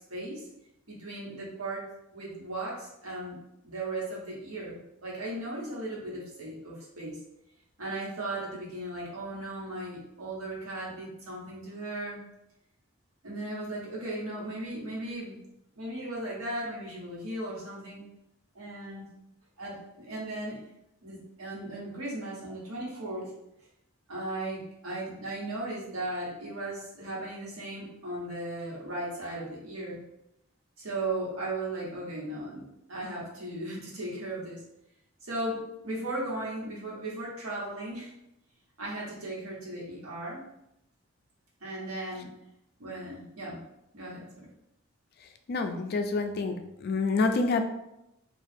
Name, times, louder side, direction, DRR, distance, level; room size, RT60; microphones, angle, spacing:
voice 1, 0.1-0.4 0.9-1.8 2.1-3.4 3.6-7.2 7.8-12.2 13.2-15.4 15.8-18.0 18.5-19.0 19.6-20.6 21.0-23.3 24.1-30.0 30.8-34.6 35.2-38.1 38.8-40.4 41.6-42.3 42.8-43.6 43.9-44.5, right 1 dB, 90° right, -5 dB, 1.1 m, -37 dB
voice 2, 45.5-47.7, left 3 dB, 50° left, 6 dB, 0.3 m, -27 dB
2.7 x 2.3 x 3.4 m, 0.84 s
head